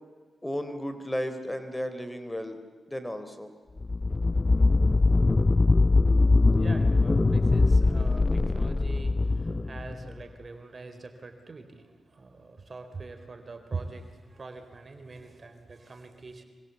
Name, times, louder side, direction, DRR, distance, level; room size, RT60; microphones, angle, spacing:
voice 1, 0.4-2.6 2.9-3.5, equal, 15° left, 9 dB, 3.7 m, -34 dB
sound 1, 3.8-10.2, left 3 dB, 35° left, 0.7 m, -22 dB
voice 2, 6.3-16.4, right 3 dB, 50° right, 7 dB, 4.1 m, -43 dB
26.0 x 24.5 x 8.4 m, 1.5 s
supercardioid pair, 40°, 0 cm